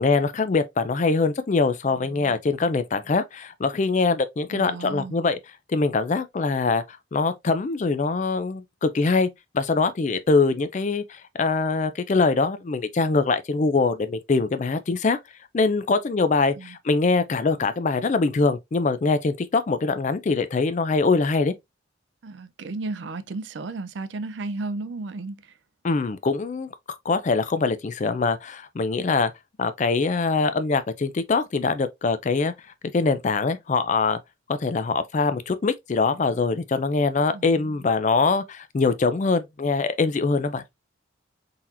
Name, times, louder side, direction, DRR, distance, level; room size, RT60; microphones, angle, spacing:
voice 1, 0.0-5.4 5.7-9.3 9.5-15.2 15.5-21.5 25.8-29.3 29.6-32.5 32.9-34.2 34.5-40.6, left 4 dB, 35° left, 0.4 m, -23 dB
voice 2, 4.5-5.2 16.6-16.7 22.2-25.4 37.3-37.7, right 3 dB, 60° right, 0.4 m, -34 dB
3.9 x 2.9 x 2.5 m
head